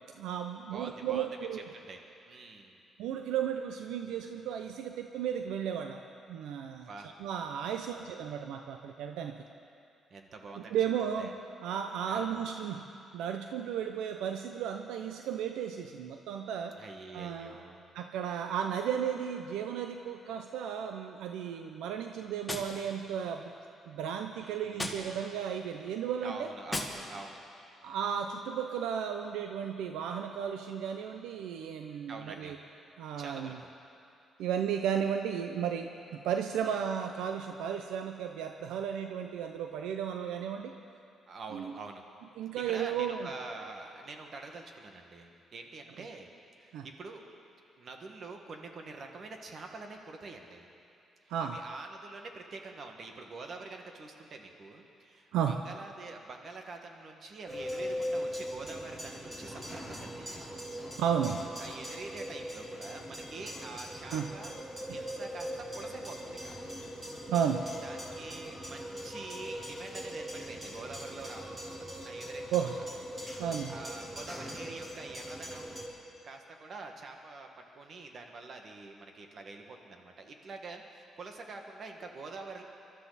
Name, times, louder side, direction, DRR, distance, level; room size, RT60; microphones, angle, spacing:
voice 1, 0.1-1.6 3.0-6.0 6.3-6.9 7.2-9.4 10.7-11.3 11.6-12.9 13.1-16.8 17.1-17.6 17.9-23.5 23.9-26.5 27.8-32.6 33.0-33.6 34.4-40.8 41.5-41.7 42.4-43.3 46.7-46.9 51.3-51.6 55.3-55.6 61.0-61.4 64.1-64.3 67.3-67.7 72.5-72.7 73.4-73.7, right 8 dB, 90° right, 5 dB, 0.6 m, -34 dB
voice 2, 0.7-2.8 6.7-7.1 7.7-8.1 10.1-10.8 11.2-11.3 12.1-12.5 16.8-17.9 24.4-25.1 26.2-27.4 32.1-32.5 33.2-33.7 36.6-36.8 41.3-42.0 42.7-46.3 46.5-47.2 47.8-50.7 51.2-60.4 61.6-64.5 64.9-66.6 67.8-72.8 73.7-75.9 76.2-82.6, right 3 dB, 50° right, 3 dB, 1.8 m, -46 dB
Gunshot gunfire, 22.5-23.6 24.7-25.6 26.7-27.5, left 2 dB, 10° left, 1.9 m, -40 dB
sound 1, 57.5-75.9, equal, 20° right, 3.4 m, -41 dB
23.0 x 13.0 x 4.2 m, 2.5 s
cardioid pair, 90°, 0 cm